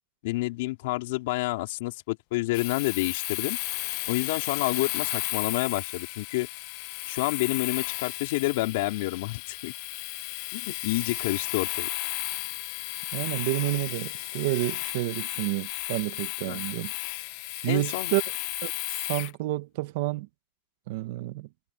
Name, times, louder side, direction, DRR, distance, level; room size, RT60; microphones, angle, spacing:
voice 1, 0.2-3.6 4.1-6.5 7.1-9.7 10.5-11.9 16.5-16.6 17.7-18.2, left 20 dB, 65° left, 4.5 m, -29 dB
Domestic sounds home sounds, 2.5-19.3, left 20 dB, 50° left, 1.0 m, -34 dB
voice 2, 13.1-16.9 17.6-18.2 18.6-18.7 19.1-20.3 20.9-21.5, right 19 dB, 60° right, 1.3 m, -29 dB
supercardioid pair, 170°, 0 cm